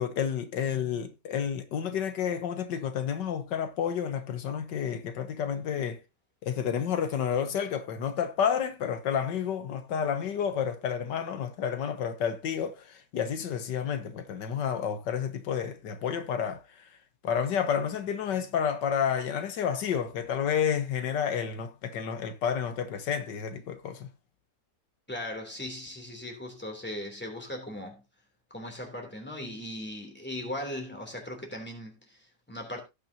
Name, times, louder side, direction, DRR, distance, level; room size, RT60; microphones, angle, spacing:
voice 1, 0.0-6.0 6.4-16.8 17.2-24.1, left 8 dB, 85° left, 1.7 m, -30 dB
voice 2, 25.1-28.0 28.5-32.8, left 1 dB, 5° left, 3.1 m, -38 dB
17.5 x 6.3 x 2.8 m
omnidirectional pair, 1.8 m